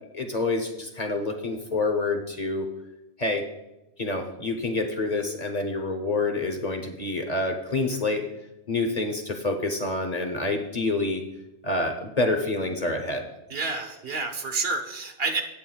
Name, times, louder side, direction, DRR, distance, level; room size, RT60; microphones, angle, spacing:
voice 1, 0.1-2.7 3.2-3.4 4.0-8.2 8.7-11.2 11.6-13.3, left 2 dB, 40° left, 4 dB, 0.9 m, -27 dB
voice 2, 13.5-15.4, right 3 dB, 55° right, 6 dB, 1.1 m, -29 dB
17.0 x 7.6 x 2.3 m, 0.95 s
omnidirectional pair, 1.2 m